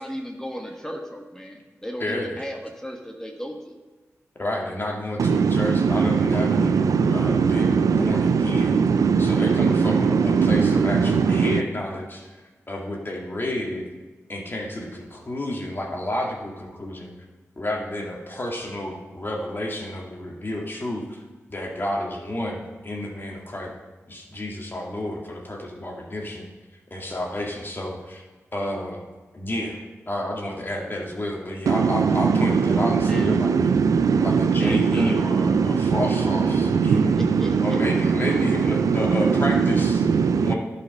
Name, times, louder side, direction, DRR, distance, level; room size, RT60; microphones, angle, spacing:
voice 1, 0.0-3.8 33.1-33.3 34.6-35.1 37.2-37.8, equal, 10° left, 2 dB, 1.2 m, -34 dB
voice 2, 2.0-2.5 4.4-8.8 9.2-12.4 12.7-13.9 14.3-17.1 17.6-21.2 21.5-23.7 24.1-26.5 26.9-28.2 28.5-29.0 29.3-33.7 34.2-37.2 37.6-40.0 40.4-40.6, left 1 dB, 40° left, -1 dB, 2.1 m, -30 dB
voice 3, 5.2-11.6 31.7-40.5, right 5 dB, 85° right, 10 dB, 0.5 m, -20 dB
11.0 x 5.2 x 5.4 m, 1.3 s
cardioid pair, 45°, 6 cm